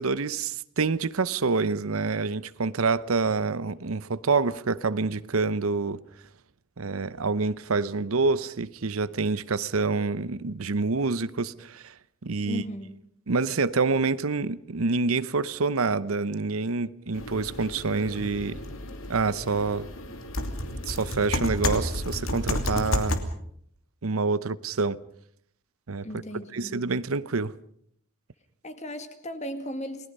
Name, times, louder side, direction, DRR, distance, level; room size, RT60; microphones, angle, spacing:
voice 1, 0.0-6.0 6.8-11.9 12.2-12.6 13.3-18.6 19.1-19.9 20.9-23.2 24.0-25.0 25.9-26.1 26.5-27.5, right 4 dB, 90° right, 0.8 m, -27 dB
voice 2, 12.5-12.9 26.0-26.9 28.6-30.1, equal, 35° left, 2.1 m, -36 dB
sound 1, 17.1-23.2, left 1 dB, 75° left, 2.7 m, -31 dB
29.5 x 20.0 x 5.4 m
head